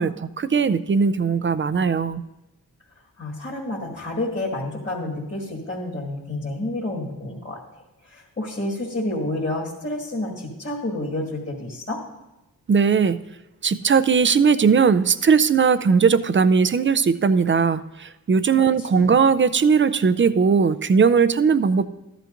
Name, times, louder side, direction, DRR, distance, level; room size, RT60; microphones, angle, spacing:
voice 1, 0.0-2.2 12.7-13.2 13.6-21.9, right 5 dB, 35° right, 14 dB, 0.5 m, -19 dB
voice 2, 3.2-7.6 8.0-12.0 18.5-19.1, left 1 dB, 35° left, -5 dB, 2.0 m, -29 dB
13.5 x 11.0 x 2.6 m, 0.96 s
cardioid pair, 60°, 37 cm